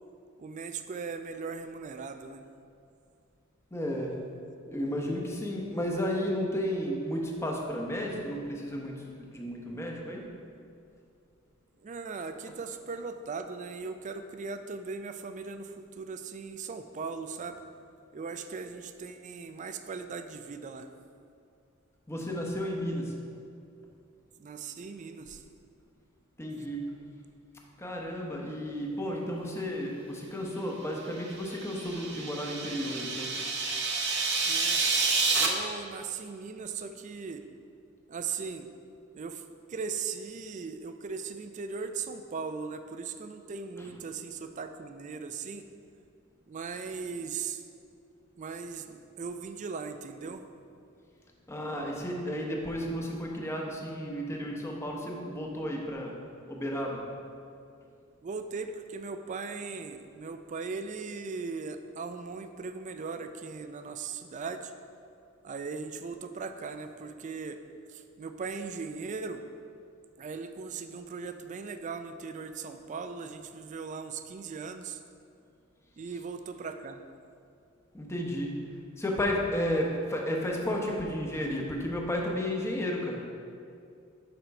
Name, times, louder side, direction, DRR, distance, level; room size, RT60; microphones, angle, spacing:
voice 1, 0.4-2.4 11.8-17.6 18.1-20.9 24.4-25.4 34.4-34.9 35.3-37.4 38.1-38.7 39.1-39.4 39.7-45.7 46.5-47.6 48.4-50.4 58.2-64.7 65.4-67.6 67.9-69.4 70.2-75.0 76.0-77.0, right 5 dB, 35° right, 8 dB, 0.3 m, -38 dB
voice 2, 3.7-4.1 4.7-8.9 9.3-10.2 22.1-23.1 26.4-26.8 27.8-33.3 51.5-56.1 56.5-57.0 77.9-78.5 79.0-83.2, equal, 15° left, -1 dB, 0.8 m, -32 dB
sound 1, 31.3-35.5, right 4 dB, 55° right, 0.8 m, -29 dB
6.8 x 4.4 x 5.3 m, 2.5 s
head